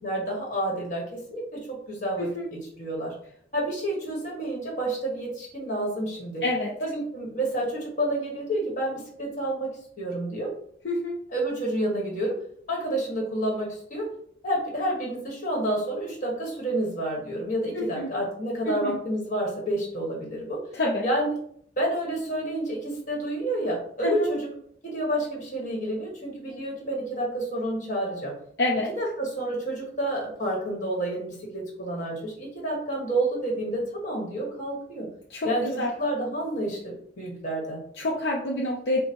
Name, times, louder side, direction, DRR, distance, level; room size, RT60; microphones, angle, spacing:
voice 1, 0.0-3.1 3.5-6.4 6.8-10.5 11.3-12.3 12.7-14.1 14.4-20.6 21.0-21.4 21.8-24.5 24.8-28.3 29.0-35.1 35.4-37.8, right 1 dB, 40° left, -1 dB, 1.5 m, -29 dB
voice 2, 10.8-11.2 17.7-18.1 18.7-19.0 20.7-21.0 24.0-24.3 28.6-28.9 35.3-35.9 38.0-39.0, left 2 dB, 60° left, -2 dB, 0.6 m, -27 dB
5.0 x 2.2 x 4.2 m, 0.65 s
head